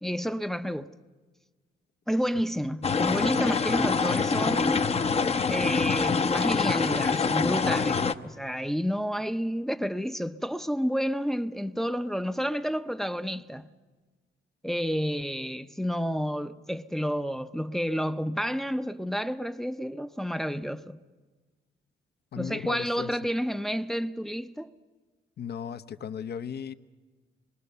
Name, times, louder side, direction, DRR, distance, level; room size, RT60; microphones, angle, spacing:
voice 1, 0.0-0.9 2.1-4.8 5.5-13.7 14.6-21.0 22.3-24.7, equal, ahead, 0.7 m, -30 dB
sound 1, 2.8-8.1, left 5 dB, 30° left, 0.8 m, -25 dB
voice 2, 22.3-23.1 25.4-26.7, left 7 dB, 55° left, 0.9 m, -36 dB
24.5 x 21.5 x 6.9 m
cardioid pair, 90°, 20 cm